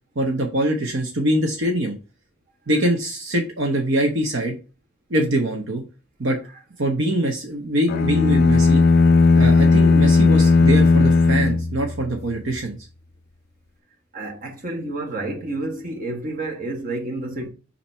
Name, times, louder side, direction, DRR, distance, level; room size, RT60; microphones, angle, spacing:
voice 1, 0.2-2.0 2.7-4.6 5.1-5.8 6.2-6.4 6.8-8.8 9.3-12.8, right 1 dB, 60° right, 1.0 m, -23 dB
sound 1, 7.9-12.3, left 3 dB, 50° left, 0.4 m, -16 dB
voice 2, 14.1-17.5, right 2 dB, 40° right, 1.4 m, -29 dB
7.2 x 2.9 x 5.5 m
head